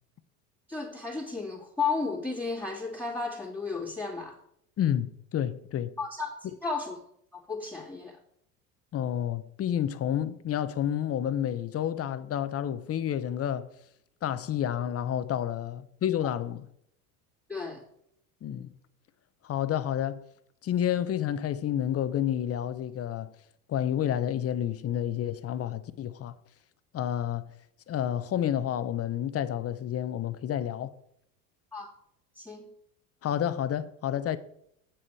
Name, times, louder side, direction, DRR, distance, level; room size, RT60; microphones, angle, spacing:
voice 1, 0.7-4.3 6.0-7.0 7.3-8.2 17.5-17.8 31.7-31.9 32.3-32.7, left 4 dB, 5° left, 2.7 m, -33 dB
voice 2, 4.8-5.9 8.9-13.7 14.2-16.6 18.4-18.7 19.4-20.2 20.6-23.3 23.7-26.3 26.9-27.5 27.9-30.9 33.2-34.4, left 10 dB, 30° left, 0.8 m, -30 dB
8.7 x 7.4 x 4.7 m
hypercardioid pair, 85°, 45 cm